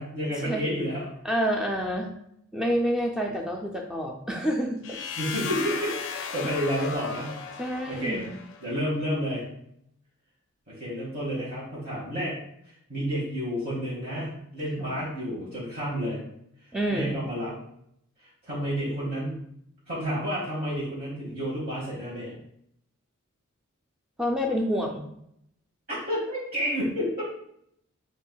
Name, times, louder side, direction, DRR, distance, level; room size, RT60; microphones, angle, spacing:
voice 1, 0.0-1.1 5.2-7.4 7.9-8.2 8.6-9.4 10.7-12.4 12.9-16.2 16.9-17.6 18.5-19.4 19.9-22.4 25.9-27.2, equal, 45° right, -8 dB, 1.2 m, -30 dB
voice 2, 1.2-2.1 2.5-5.0 6.4-6.5 7.6-8.4 14.8-15.0 16.7-17.2 24.2-25.1, equal, 5° right, 1 dB, 0.4 m, -28 dB
Spice shipment, 4.8-8.7, left 6 dB, 60° left, 0.4 m, -35 dB
6.2 x 3.3 x 2.3 m, 0.73 s
head